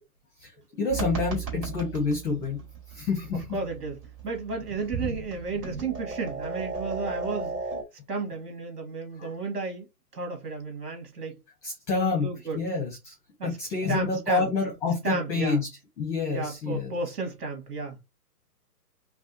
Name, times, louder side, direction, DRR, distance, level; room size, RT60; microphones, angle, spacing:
voice 1, 0.8-2.6 2.9-3.5 9.2-9.3 11.6-12.3 12.5-13.1 13.4-15.7 16.0-16.9, left 4 dB, 5° left, 0.7 m, -28 dB
sound 1, 0.9-7.8, right 4 dB, 35° right, 2.3 m, -36 dB
voice 2, 3.5-7.6 8.1-9.9 10.1-11.4 11.9-12.6 13.4-13.6 13.9-14.5 15.0-15.6 16.3-18.0, right 3 dB, 65° right, 2.1 m, -33 dB
5.4 x 2.2 x 2.7 m
hypercardioid pair, 145°, 50 cm